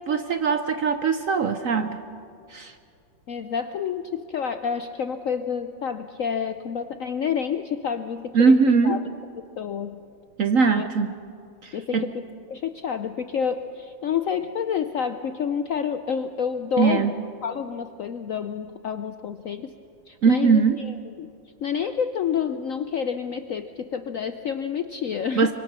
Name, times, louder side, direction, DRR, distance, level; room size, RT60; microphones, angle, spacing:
voice 1, 0.1-2.0 2.5-2.7 8.3-9.0 10.4-11.2 11.6-12.1 16.8-17.1 20.2-20.8 25.3-25.5, right 5 dB, 60° right, 9 dB, 0.9 m, -21 dB
voice 2, 3.3-9.0 9.4-10.0 10.7-10.8 11.7-12.2 12.5-17.1 17.4-19.7 20.1-21.3 21.6-25.5, left 7 dB, 70° left, 9 dB, 0.8 m, -29 dB
24.5 x 24.5 x 6.1 m, 2.5 s
omnidirectional pair, 2.1 m